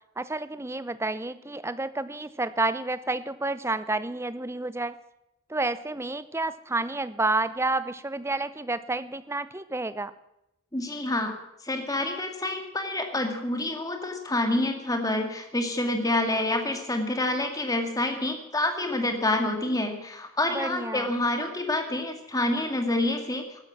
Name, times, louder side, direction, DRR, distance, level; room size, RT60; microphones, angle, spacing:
voice 1, 0.2-5.0 5.5-10.1 20.5-21.1, right 2 dB, 10° right, 14 dB, 0.6 m, -30 dB
voice 2, 10.7-11.3 11.6-23.4, left 2 dB, 15° left, 5 dB, 2.0 m, -27 dB
15.5 x 12.5 x 7.4 m, 0.86 s
head